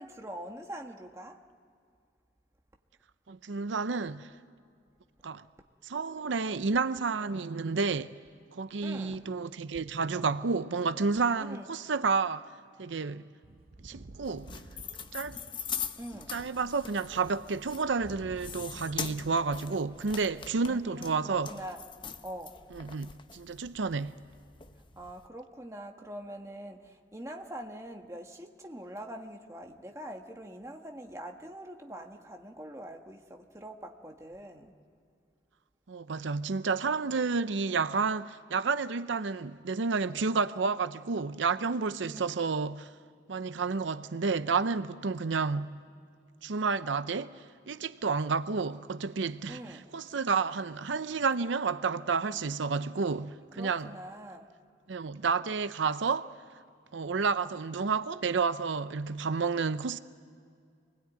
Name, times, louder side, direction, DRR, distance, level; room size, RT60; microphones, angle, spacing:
voice 1, 0.0-1.4 8.8-9.2 11.4-11.7 13.9-14.1 16.0-16.3 20.7-21.8 22.2-22.6 24.9-34.7 42.0-42.4 49.5-49.9 53.5-54.5, right 1 dB, 15° right, 1.5 m, -44 dB
voice 2, 3.3-4.3 5.2-5.5 5.8-8.1 8.5-12.5 12.8-13.3 13.8-14.5 15.1-15.4 16.3-21.5 22.7-24.2 35.9-42.9 43.3-45.7 46.4-53.9 54.9-56.3 56.9-60.0, right 4 dB, 85° right, 0.6 m, -30 dB
sound 1, 13.4-19.4 19.6-20.5, right 2 dB, 50° right, 0.7 m, -51 dB
sound 2, 14.2-25.3, left 7 dB, 25° left, 0.7 m, -43 dB
26.5 x 20.5 x 9.4 m
head